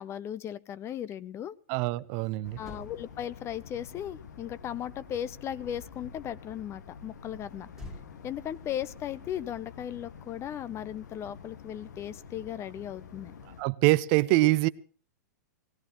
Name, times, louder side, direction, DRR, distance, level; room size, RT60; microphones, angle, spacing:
voice 1, 0.0-1.5 2.6-7.7 8.2-13.3, left 10 dB, 30° left, 0.7 m, -37 dB
voice 2, 1.7-2.6 13.6-14.7, right 19 dB, 45° right, 0.7 m, -24 dB
sound 1, 2.4-13.6, left 6 dB, 70° left, 1.5 m, -48 dB
Motor vehicle (road), 2.6-6.1 7.7-10.3 10.6-10.9, left 1 dB, 5° right, 2.0 m, -52 dB
19.5 x 17.5 x 3.1 m
hypercardioid pair, 110°, 10 cm